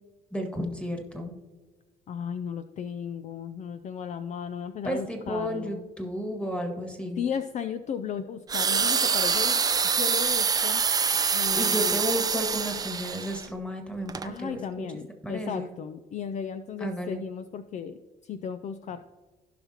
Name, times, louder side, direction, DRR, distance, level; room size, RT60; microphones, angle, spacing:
voice 1, 0.3-1.3 4.8-7.2 11.5-14.9 15.2-15.7 16.8-17.3, equal, 5° left, 3 dB, 1.7 m, -32 dB
voice 2, 2.1-5.9 7.2-9.6 10.0-10.8 11.3-12.0 14.2-18.0 18.2-19.0, left 7 dB, 45° left, 11 dB, 0.4 m, -35 dB
sound 1, 8.5-13.4 14.1-14.3, right 5 dB, 20° right, 0.4 m, -25 dB
16.0 x 5.7 x 2.9 m, 1.3 s
cardioid pair, 110°, 17 cm